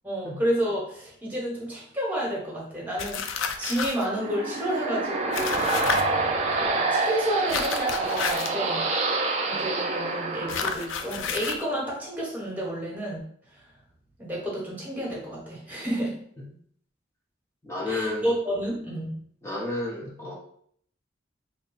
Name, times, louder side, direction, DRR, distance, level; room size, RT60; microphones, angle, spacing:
voice 1, 0.0-5.6 6.5-8.8 9.5-13.2 13.5-13.6 14.2-16.1 17.9-19.2, right 1 dB, 10° right, -4 dB, 1.1 m, -30 dB
sound 1, 3.0-4.1 5.3-6.0 7.5-8.6 10.5-11.6, left 6 dB, 90° left, 0.4 m, -30 dB
sound 2, 3.8-11.3, right 3 dB, 35° right, 0.4 m, -27 dB
voice 2, 17.6-18.3 19.4-20.4, left 2 dB, 15° left, -4 dB, 0.7 m, -31 dB
3.3 x 2.2 x 3.8 m, 0.62 s
head